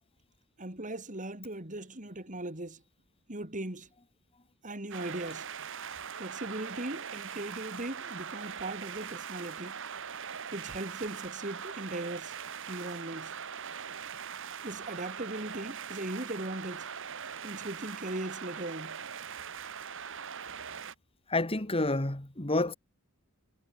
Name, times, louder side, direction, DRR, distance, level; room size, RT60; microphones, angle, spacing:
voice 1, 0.6-2.8 3.3-3.9 4.6-5.5 6.2-9.7 10.5-12.3 12.7-13.3 14.6-16.9 17.4-19.0, right 1 dB, 35° right, 4.4 m, -38 dB
sound 1, 4.9-20.9, right 7 dB, 60° right, 2.2 m, -41 dB
voice 2, 21.3-22.7, left 2 dB, 25° left, 2.2 m, -29 dB
head